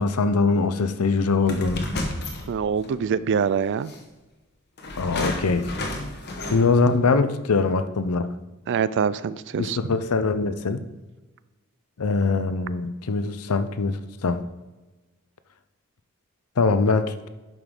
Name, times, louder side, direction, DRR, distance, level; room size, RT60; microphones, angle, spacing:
voice 1, 0.0-1.9 5.0-5.9 6.5-8.3 9.5-10.8 12.0-14.4 16.6-17.3, left 4 dB, 85° left, 11 dB, 0.6 m, -22 dB
sound 1, 1.4-3.0 3.9-4.0 4.8-6.9, left 2 dB, 50° left, 1.1 m, -31 dB
voice 2, 2.5-3.9 8.7-9.8, right 7 dB, 55° right, 17 dB, 0.3 m, -24 dB
11.0 x 5.2 x 3.8 m, 1.1 s
head